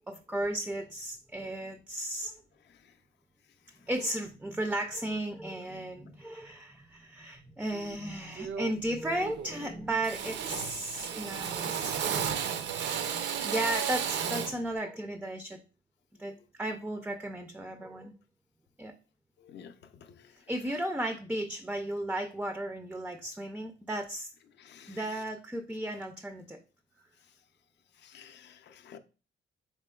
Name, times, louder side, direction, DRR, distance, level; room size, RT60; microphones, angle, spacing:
voice 1, 0.1-2.4 3.9-12.3 13.0-15.6 16.2-18.1 18.8-18.9 20.5-24.3 24.9-26.6, right 1 dB, 5° right, 0.3 m, -35 dB
Drill, 7.7-7.9 8.4-8.9 9.1-9.7 10.0-14.6, right 8 dB, 65° right, 0.4 m, -33 dB
voice 2, 24.6-25.0 28.0-29.0, left 8 dB, 60° left, 0.5 m, -51 dB
4.3 x 3.0 x 2.2 m
cardioid pair, 90°, 20 cm